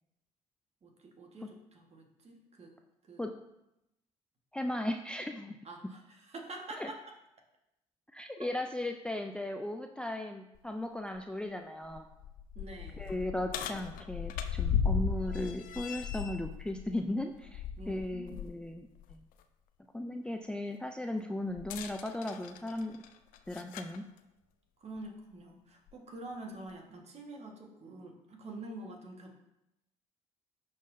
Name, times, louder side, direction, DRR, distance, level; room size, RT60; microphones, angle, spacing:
voice 1, 0.8-2.7 3.1-3.2 5.6-7.0 8.4-8.5 12.5-13.1 17.8-18.4 24.8-29.4, right 2 dB, 40° right, 2 dB, 1.4 m, -46 dB
voice 2, 4.5-5.6 6.8-6.9 8.1-12.1 13.0-19.2 19.9-23.0 23.5-24.0, left 1 dB, 5° left, 5 dB, 0.4 m, -37 dB
sound 1, 10.6-10.7 11.2-11.3 11.8-18.5 19.0-19.1 21.6-24.0 25.0-25.1 25.9-26.0, left 7 dB, 65° left, 0.5 m, -36 dB
11.0 x 3.8 x 2.6 m, 0.87 s
hypercardioid pair, 60°, 16 cm